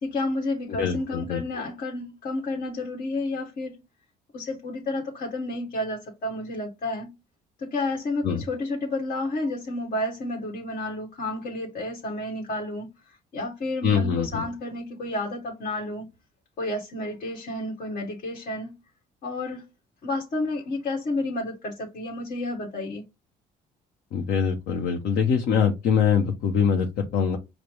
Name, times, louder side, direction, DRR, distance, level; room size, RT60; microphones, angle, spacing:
voice 1, 0.0-3.7 4.3-7.1 7.6-16.1 16.6-18.7 19.2-19.6 20.0-23.0, left 2 dB, 55° left, 1.3 m, -31 dB
voice 2, 0.7-1.6 8.2-8.4 13.8-14.4 24.1-27.4, left 7 dB, 70° left, 0.8 m, -24 dB
5.0 x 2.1 x 4.6 m
cardioid pair, 110°, 17 cm